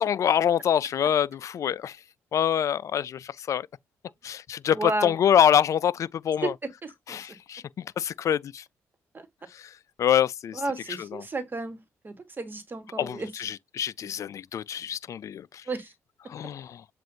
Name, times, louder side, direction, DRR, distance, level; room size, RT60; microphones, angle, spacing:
voice 1, 0.0-1.9 2.3-3.2 3.5-3.6 4.2-6.5 7.1-7.6 8.0-8.6 10.0-10.6 11.0-11.2 13.0-15.4 16.3-16.8, left 9 dB, 55° left, 0.3 m, -25 dB
voice 2, 4.7-5.2 6.4-6.5 6.8-7.2 9.1-9.2 10.5-11.8 12.0-13.4 15.7-15.9, right 2 dB, 35° right, 1.4 m, -32 dB
7.4 x 2.5 x 2.7 m
supercardioid pair, 60°, 6 cm